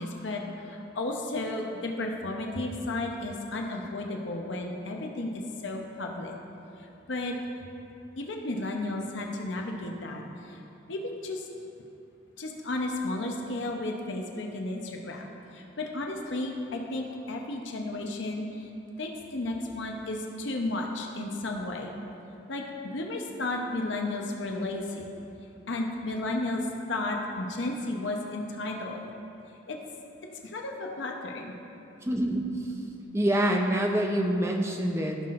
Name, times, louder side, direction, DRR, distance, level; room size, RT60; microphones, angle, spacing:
voice 1, 0.0-6.3 7.1-7.4 8.2-10.6 10.9-11.5 12.4-15.2 15.5-18.7 19.0-21.9 22.5-22.6 22.9-25.1 25.7-29.0 29.7-29.8 30.4-31.5, left 2 dB, 70° left, 1 dB, 0.7 m, -33 dB
voice 2, 32.0-32.7 33.1-35.2, right 1 dB, 15° right, 1 dB, 0.5 m, -26 dB
15.0 x 5.8 x 2.5 m, 2.8 s
head